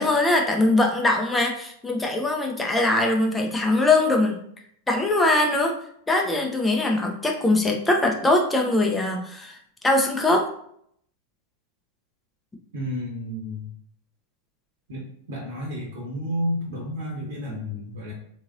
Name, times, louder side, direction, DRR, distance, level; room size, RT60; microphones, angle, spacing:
voice 1, 0.0-4.4 4.9-5.8 6.1-9.6 9.8-10.5, left 2 dB, 10° left, 1 dB, 0.6 m, -22 dB
voice 2, 12.7-13.7 14.9-18.1, equal, 60° right, -3 dB, 1.1 m, -31 dB
3.7 x 2.9 x 2.6 m, 0.66 s
figure-of-eight pair, 90°, 0 cm